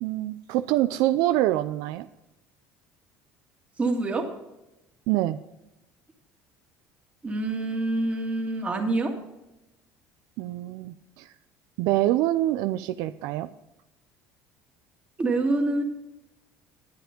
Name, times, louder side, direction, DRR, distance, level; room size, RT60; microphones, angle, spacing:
voice 1, 0.0-2.1 5.1-5.4 10.4-11.3 11.8-13.5, right 15 dB, 75° right, 11 dB, 0.5 m, -25 dB
voice 2, 3.8-4.3 7.2-9.1 15.2-15.8, right 2 dB, 20° right, 2 dB, 2.0 m, -26 dB
10.5 x 9.1 x 5.2 m, 0.94 s
cardioid pair, 130°, 6 cm